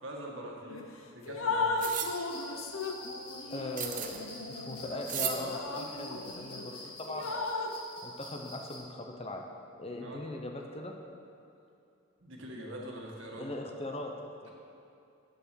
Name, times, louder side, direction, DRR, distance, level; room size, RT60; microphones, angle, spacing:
voice 1, 0.0-1.8 10.0-10.2 12.2-13.5, right 1 dB, 65° right, -1 dB, 1.6 m, -43 dB
Drip, 0.7-0.9 1.3-6.7 7.1-7.8, left 3 dB, 80° left, 0.8 m, -36 dB
sound 1, 1.8-2.1 3.8-4.2 5.0-5.4, right 9 dB, 40° right, 0.7 m, -34 dB
sound 2, 2.0-8.8, left 2 dB, 50° left, 2.3 m, -47 dB
voice 2, 3.5-7.5 8.0-9.5 9.8-10.9 13.4-14.5, left 1 dB, 30° left, 3 dB, 0.7 m, -40 dB
8.9 x 7.3 x 6.9 m, 2.7 s
head